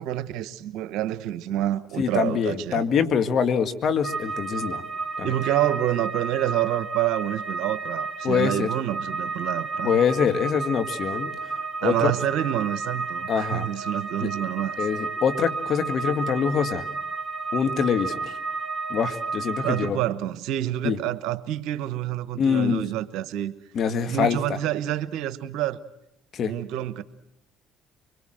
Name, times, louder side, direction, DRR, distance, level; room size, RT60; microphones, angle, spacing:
voice 1, 0.0-2.8 5.2-10.0 11.8-14.8 19.6-23.5 24.1-25.8 26.4-27.0, right 13 dB, 75° right, 1.1 m, -28 dB
voice 2, 2.0-4.8 5.2-5.3 8.2-8.7 9.8-11.3 11.8-12.1 13.3-13.7 14.2-14.3 14.8-16.8 17.5-18.4 18.9-20.0 20.8-21.0 22.4-22.8 23.8-24.4 26.3-26.5, left 7 dB, 55° left, 1.8 m, -24 dB
sound 1, 4.0-19.9, right 4 dB, 10° right, 2.2 m, -32 dB
25.0 x 22.0 x 7.7 m
supercardioid pair, 70°, 0 cm